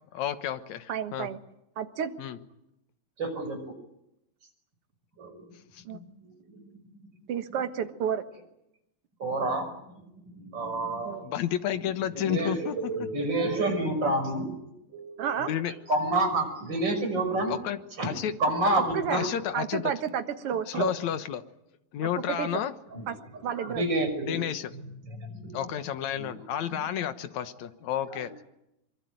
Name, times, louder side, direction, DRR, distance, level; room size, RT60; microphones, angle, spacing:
voice 1, 0.1-1.3 2.2-2.4 5.7-6.0 11.2-12.9 15.4-15.7 17.5-18.3 19.1-19.9 20.7-21.4 21.9-22.8 24.3-24.7 25.5-28.3, left 10 dB, 65° left, 10 dB, 2.2 m, -31 dB
voice 2, 0.9-1.4 1.8-2.1 5.9-6.0 7.3-8.2 11.0-11.3 15.2-15.5 18.8-19.2 19.5-20.9 22.4-22.6 23.1-23.2 23.4-23.8, right 8 dB, 55° right, 8 dB, 1.9 m, -31 dB
voice 3, 3.2-3.7 5.2-5.5 6.5-6.6 9.2-9.7 10.3-11.2 12.2-15.6 15.9-17.5 18.4-19.3 20.7-20.8 22.9-23.1 23.3-24.4 25.1-25.6 26.1-26.3, right 2 dB, 30° right, 6 dB, 6.4 m, -29 dB
24.0 x 23.5 x 9.3 m, 0.85 s
omnidirectional pair, 4.1 m